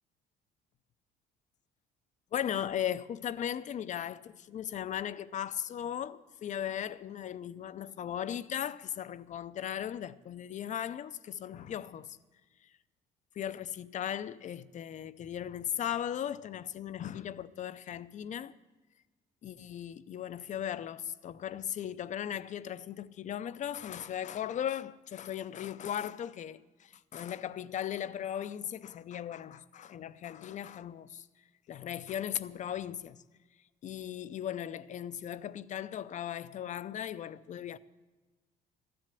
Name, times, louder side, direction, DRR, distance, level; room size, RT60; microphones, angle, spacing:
voice 1, 2.3-12.2 12.6-12.7 13.3-18.5 19.4-31.3 31.7-33.2 33.8-37.8, left 10 dB, 45° left, 0.6 m, -37 dB
13.5 x 7.7 x 9.1 m
cardioid pair, 110°, 17 cm